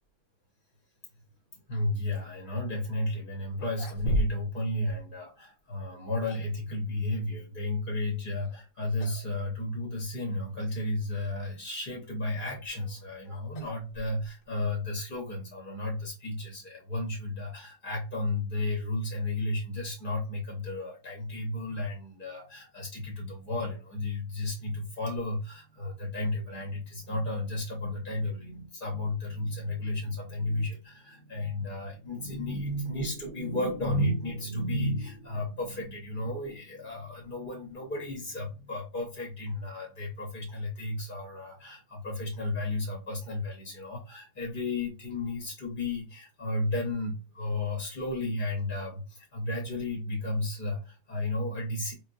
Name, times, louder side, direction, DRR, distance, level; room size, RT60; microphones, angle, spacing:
voice 1, 1.5-51.9, left 1 dB, 40° left, 0 dB, 0.9 m, -33 dB
sound 1, 3.0-3.1 3.5-4.6 4.9-5.0 5.9-6.6 8.4-8.7 9.0-9.3 9.6-9.7 10.5-10.6 12.4-14.5, equal, 60° left, 1.0 m, -35 dB
5.0 x 2.0 x 2.5 m, 0.31 s
omnidirectional pair, 1.8 m